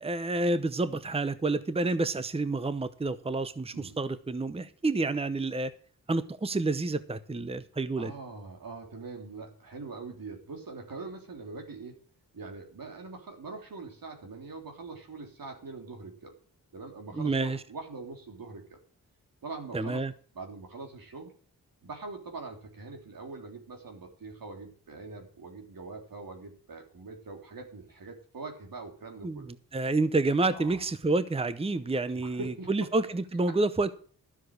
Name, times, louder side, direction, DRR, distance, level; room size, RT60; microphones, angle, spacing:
voice 1, 0.0-5.7 6.1-8.1 17.2-17.6 19.7-20.1 29.2-29.4 29.7-33.9, right 2 dB, 15° right, 0.8 m, -29 dB
voice 2, 8.0-12.0 12.3-16.3 16.7-18.8 19.4-20.0 20.3-21.3 21.8-29.5 30.5-30.9 32.2-32.9 33.5-33.6, right 3 dB, 85° right, 3.6 m, -43 dB
12.5 x 7.4 x 6.3 m
wide cardioid pair, 120°, 34 cm